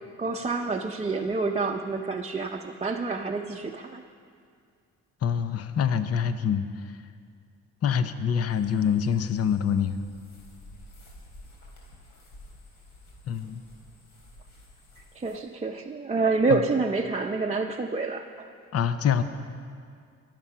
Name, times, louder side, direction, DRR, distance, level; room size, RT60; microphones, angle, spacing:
voice 1, 0.2-4.0 15.0-18.5, right 3 dB, 20° right, 0 dB, 0.7 m, -28 dB
voice 2, 5.2-6.9 7.8-10.0 13.3-13.6 16.5-16.6 18.7-19.2, left 7 dB, 55° left, 11 dB, 0.8 m, -25 dB
sound 1, 8.5-15.4, left 1 dB, 80° left, 3.8 m, -51 dB
22.0 x 7.6 x 5.7 m, 2.2 s
cardioid pair, 90°, 30 cm